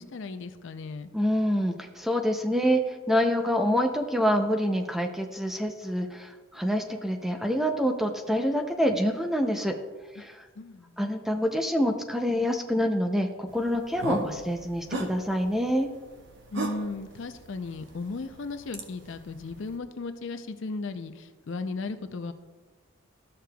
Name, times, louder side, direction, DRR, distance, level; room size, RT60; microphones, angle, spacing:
voice 1, 0.0-1.1 10.2-10.3 10.6-11.1 16.5-22.3, left 3 dB, 60° left, 9 dB, 0.4 m, -36 dB
voice 2, 1.1-9.8 10.1-10.4 11.0-15.9, equal, ahead, 4 dB, 0.4 m, -26 dB
sound 1, 13.5-19.8, right 2 dB, 55° right, 0.9 m, -38 dB
12.5 x 6.6 x 2.3 m, 1.3 s
head